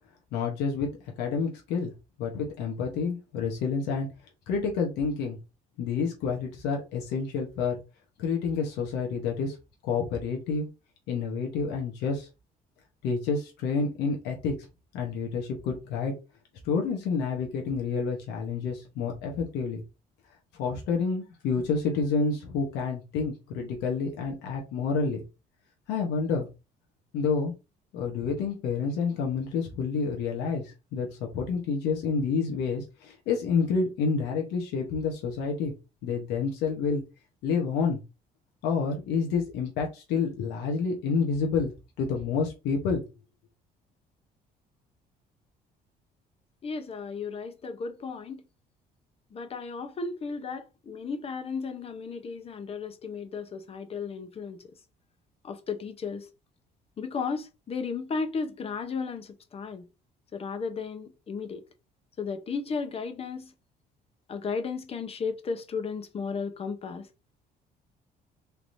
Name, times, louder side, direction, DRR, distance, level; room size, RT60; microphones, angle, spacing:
voice 1, 0.3-0.9 1.2-1.9 2.2-4.1 4.5-5.4 5.8-7.8 8.2-9.6 9.8-10.7 11.1-12.3 13.0-14.5 14.9-16.1 16.6-19.8 20.6-25.2 25.9-26.5 27.1-27.5 27.9-35.7 36.0-37.0 37.4-38.0 38.6-43.0, left 5 dB, 85° left, 0.9 m, -29 dB
voice 2, 46.6-48.4 49.3-54.7 55.4-56.3 57.0-59.9 60.3-61.6 62.2-63.5 64.3-67.1, left 5 dB, 35° left, 0.6 m, -34 dB
3.4 x 2.9 x 2.6 m
cardioid pair, 110°, 17 cm